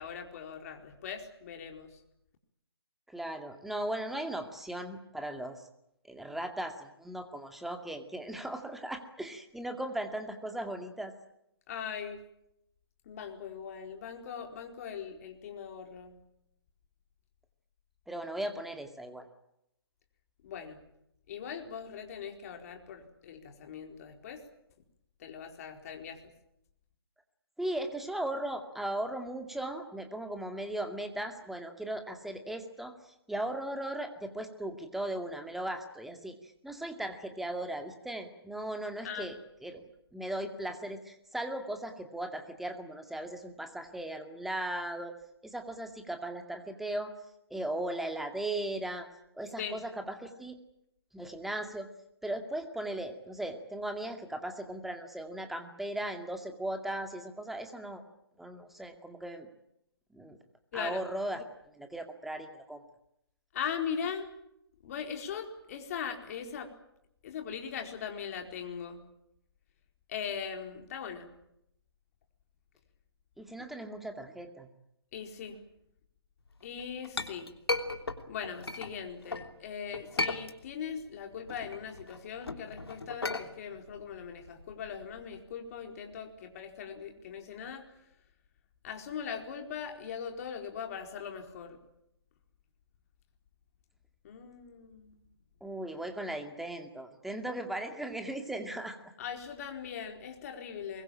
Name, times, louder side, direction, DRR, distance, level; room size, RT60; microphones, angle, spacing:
voice 1, 0.0-2.0 11.7-12.2 13.1-16.2 20.4-20.8 21.3-24.4 25.2-26.2 39.0-39.3 49.6-49.8 60.7-61.0 63.5-64.3 64.8-66.7 67.2-69.0 70.1-71.4 75.1-75.6 76.6-77.5 78.3-87.8 88.8-91.8 94.2-95.2 99.2-101.0, left 7 dB, 35° left, 4 dB, 4.4 m, -40 dB
voice 2, 3.1-5.7 6.1-11.1 18.1-19.3 27.6-45.1 45.4-47.1 47.5-49.1 49.4-50.6 51.1-51.9 52.2-58.0 58.4-59.5 60.1-60.4 60.7-61.4 61.7-62.8 73.4-74.7 95.6-99.0, right 1 dB, ahead, 6 dB, 2.2 m, -37 dB
Chink clink, 76.6-79.5 79.9-81.0 81.3-85.4, left 2 dB, 70° left, 3.1 m, -36 dB
24.0 x 22.5 x 8.9 m, 0.79 s
figure-of-eight pair, 140°, 14 cm